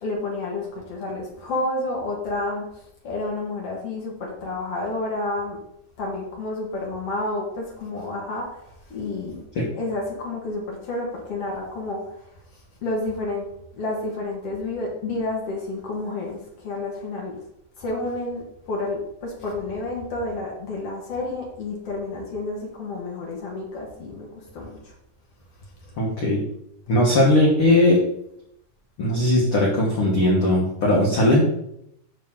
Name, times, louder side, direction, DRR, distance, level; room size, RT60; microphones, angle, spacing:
voice 1, 0.0-5.6 6.0-9.4 9.7-13.5 13.8-17.4 17.8-24.9 25.8-26.0, left 2 dB, 50° left, -2 dB, 1.9 m, -30 dB
voice 2, 26.0-26.4 26.9-28.0 29.0-31.4, left 1 dB, 85° left, -2 dB, 1.2 m, -19 dB
9.4 x 6.0 x 3.8 m, 0.77 s
omnidirectional pair, 4.7 m